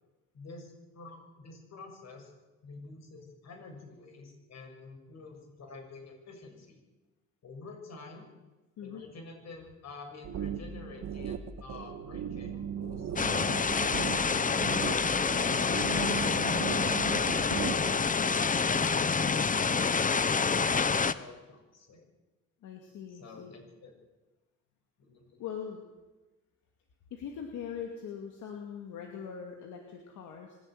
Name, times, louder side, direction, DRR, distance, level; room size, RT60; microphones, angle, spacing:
voice 1, 0.3-2.3 2.6-6.8 7.4-8.3 8.8-14.9 15.6-22.0 23.1-23.9 25.1-25.4, left 3 dB, 60° left, 3 dB, 7.0 m, -49 dB
sound 1, 10.2-17.9, right 8 dB, 65° right, 1.7 m, -37 dB
sound 2, 13.2-21.1, left 5 dB, 25° left, 0.9 m, -27 dB
voice 2, 15.7-16.3 22.6-23.5 25.4-25.8 27.1-30.6, left 7 dB, 85° left, 2 dB, 2.5 m, -41 dB
25.0 x 12.0 x 9.3 m, 1.1 s
cardioid pair, 90°, 30 cm